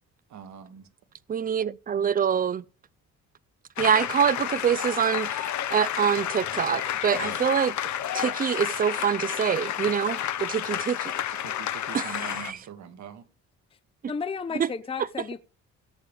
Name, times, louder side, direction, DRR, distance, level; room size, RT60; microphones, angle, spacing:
voice 1, 0.3-0.9 11.3-13.2, right 8 dB, 65° right, 1.3 m, -43 dB
voice 2, 1.3-2.6 3.8-7.8 8.1-11.1 11.9-12.2 12.4-12.6 14.6-14.7, right 8 dB, 30° right, 0.4 m, -25 dB
sound 1, 3.8-12.5, left 11 dB, 70° left, 0.9 m, -31 dB
voice 3, 14.1-15.4, left 5 dB, 20° left, 0.6 m, -33 dB
17.0 x 6.7 x 3.4 m
cardioid pair, 90°, 30 cm